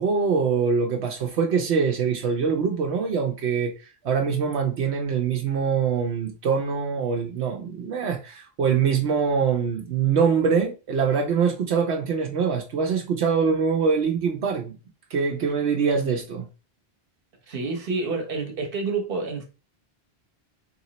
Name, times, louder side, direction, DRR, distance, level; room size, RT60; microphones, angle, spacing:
voice 1, 0.0-3.7 4.0-14.8 15.1-16.4, right 6 dB, 80° right, 1.0 m, -24 dB
voice 2, 17.5-19.5, right 4 dB, 60° right, 1.1 m, -28 dB
3.2 x 3.0 x 4.0 m
omnidirectional pair, 1.1 m